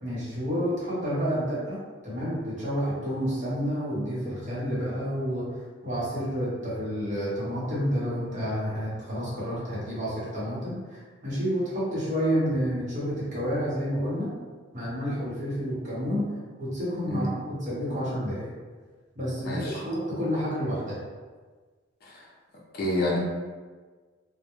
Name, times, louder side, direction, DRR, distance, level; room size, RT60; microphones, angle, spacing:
voice 1, 0.0-1.8 2.0-5.5 5.8-14.3 14.7-16.2 16.6-18.5 19.2-21.0, equal, 35° right, -8 dB, 0.9 m, -29 dB
voice 2, 19.4-19.7 22.1-22.2 22.8-23.2, left 1 dB, 45° left, -4 dB, 0.5 m, -28 dB
2.2 x 2.1 x 2.9 m, 1.4 s
head